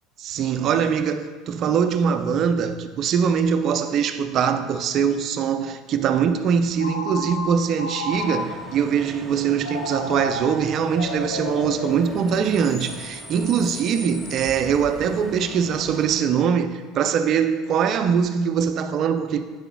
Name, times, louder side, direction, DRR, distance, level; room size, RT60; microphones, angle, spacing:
voice 1, 0.2-19.4, right 7 dB, 50° right, 0.5 m, -22 dB
Telephone, 6.8-8.8 9.6-12.7, left 2 dB, 90° left, 0.8 m, -32 dB
Bus / Idling / Screech, 8.1-16.1, equal, 5° left, 1.4 m, -40 dB
8.2 x 6.7 x 2.3 m
hypercardioid pair, 70°, 0 cm